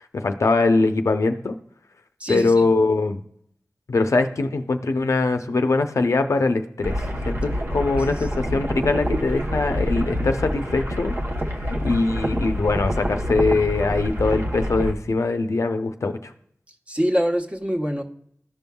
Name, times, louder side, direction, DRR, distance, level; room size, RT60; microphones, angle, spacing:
voice 1, 0.1-1.5 2.3-3.2 3.9-11.2 11.7-16.3, left 3 dB, 75° left, 7 dB, 0.6 m, -22 dB
voice 2, 2.2-2.6 16.9-18.0, equal, 20° right, 2 dB, 1.1 m, -24 dB
sound 1, 6.8-14.9, equal, 50° right, 0.9 m, -27 dB
14.0 x 5.4 x 2.3 m, 0.69 s
wide cardioid pair, 70°, 5 cm